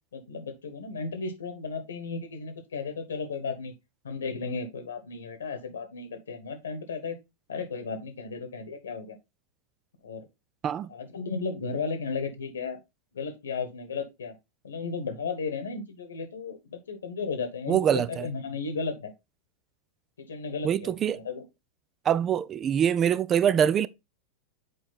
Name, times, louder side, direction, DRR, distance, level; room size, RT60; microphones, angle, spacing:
voice 1, 0.1-3.7 4.0-7.2 7.5-9.2 10.0-10.3 10.9-12.8 13.1-14.3 14.6-19.1 20.2-21.4, left 4 dB, 65° left, 1.3 m, -34 dB
voice 2, 17.7-18.3 20.6-21.2 22.0-23.9, right 9 dB, 25° right, 0.4 m, -24 dB
6.9 x 4.8 x 4.0 m
figure-of-eight pair, 90°, 0 cm